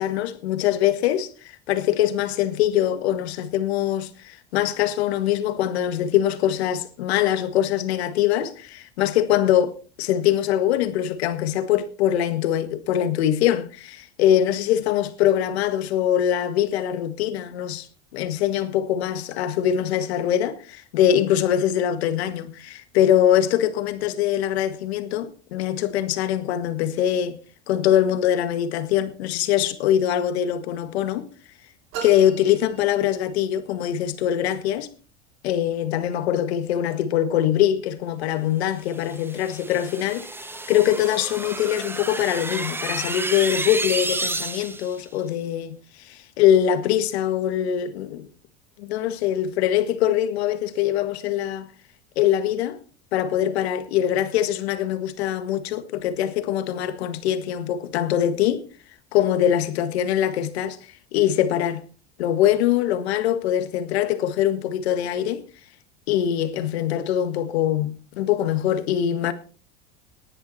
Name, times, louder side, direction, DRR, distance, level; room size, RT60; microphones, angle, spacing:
voice 1, 0.0-17.9 18.1-27.4 27.7-31.3 32.0-34.9 35.4-40.3 40.7-48.3 48.8-51.7 52.1-52.8 53.1-58.6 59.1-60.8 61.1-61.8 62.2-65.4 66.1-69.3, left 11 dB, 85° left, 1.8 m, -23 dB
sound 1, 31.9-33.6, right 7 dB, 70° right, 5.1 m, -38 dB
sound 2, 39.0-45.0, right 2 dB, 5° right, 1.0 m, -31 dB
19.0 x 10.0 x 4.3 m
supercardioid pair, 95°, 31 cm